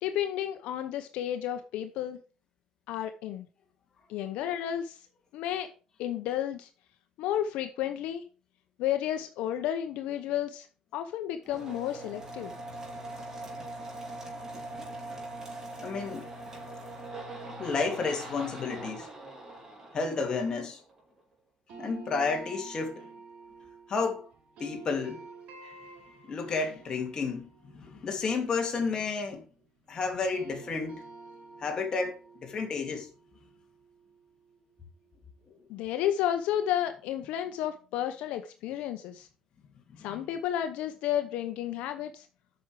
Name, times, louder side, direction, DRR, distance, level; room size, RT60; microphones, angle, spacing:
voice 1, 0.0-2.2 2.9-3.5 4.1-5.0 5.3-5.7 6.0-6.7 7.2-8.3 8.8-10.7 10.9-12.5 35.7-39.3 40.0-42.3, left 11 dB, 90° left, 0.8 m, -32 dB
sound 1, 11.4-21.0, right 1 dB, 30° right, 4.0 m, -42 dB
voice 2, 15.8-16.3 17.6-19.1 19.9-20.8 21.8-23.1 23.9-24.3 24.6-25.2 25.6-25.7 26.3-29.4 29.9-31.0 31.6-33.1 39.9-40.3, left 4 dB, 40° left, 2.7 m, -31 dB
sound 2, 21.7-29.8 30.1-35.0, right 4 dB, 80° right, 5.0 m, -50 dB
8.5 x 6.2 x 5.0 m
cardioid pair, 120°, 2 cm